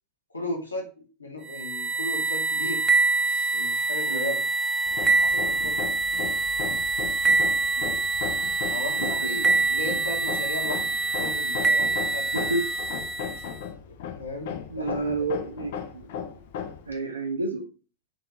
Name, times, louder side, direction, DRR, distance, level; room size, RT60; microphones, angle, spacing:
voice 1, 0.3-2.8 3.2-4.4 5.2-6.0 8.7-10.8 11.1-12.3 13.9-15.0, left 2 dB, 80° left, 1 dB, 1.1 m, -36 dB
sound 1, 1.5-13.6, right 3 dB, 20° right, 0.5 m, -25 dB
Hammer, 4.9-16.9, left 8 dB, 55° left, 0.5 m, -37 dB
voice 2, 9.0-10.0 12.3-12.7 14.7-16.1 16.9-17.6, right 2 dB, 80° right, 3 dB, 0.7 m, -31 dB
3.3 x 3.1 x 3.8 m, 0.35 s
figure-of-eight pair, 90°, 0 cm